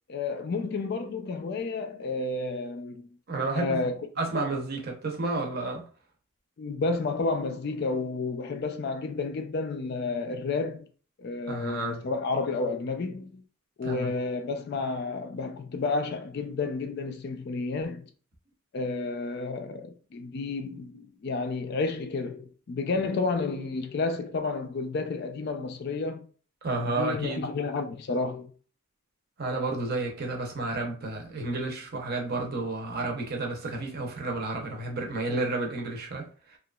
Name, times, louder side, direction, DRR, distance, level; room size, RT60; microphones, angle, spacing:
voice 1, 0.1-3.1 3.5-3.9 6.6-10.8 11.2-13.4 13.8-18.1 18.7-26.3 26.8-28.5, left 3 dB, 50° left, 0.3 m, -31 dB
voice 2, 3.3-3.8 4.2-5.8 11.5-12.0 13.8-14.1 26.6-27.4 29.4-36.6, right 2 dB, 45° right, 0.7 m, -31 dB
2.8 x 2.3 x 2.3 m
head